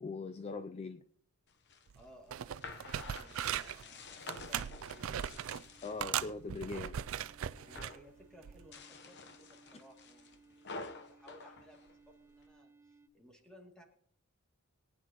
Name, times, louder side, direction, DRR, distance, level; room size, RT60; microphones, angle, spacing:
voice 1, 0.0-1.0 5.8-7.0, left 4 dB, 30° left, 10 dB, 0.4 m, -41 dB
sound 1, 1.5-6.4 6.8-7.3 7.6-8.1 8.6-12.5, left 3 dB, 55° left, 1.0 m, -50 dB
voice 2, 1.9-5.5 7.6-13.8, equal, 5° left, 0 dB, 2.5 m, -60 dB
sound 2, 1.9-2.0 2.3-3.8 4.3-5.6 6.0-8.0 8.5-8.7, right 9 dB, 65° right, 0.4 m, -39 dB
sound 3, 2.9-13.1, right 3 dB, 15° right, 0.6 m, -64 dB
22.5 x 9.4 x 3.0 m, 0.66 s
head